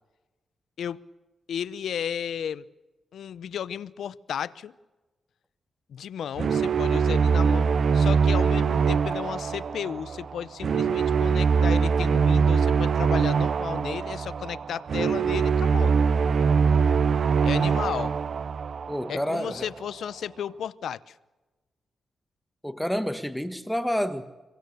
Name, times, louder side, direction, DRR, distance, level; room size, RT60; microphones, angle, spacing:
voice 1, 1.5-2.7 3.1-4.7 5.9-16.0 17.4-18.1 19.1-21.2, left 8 dB, 80° left, 0.8 m, -34 dB
sound 1, 6.4-19.5, right 6 dB, 60° right, 0.8 m, -23 dB
voice 2, 18.9-19.7 22.6-24.4, equal, 5° left, 1.6 m, -29 dB
25.5 x 23.5 x 6.8 m
cardioid pair, 90°, 0 cm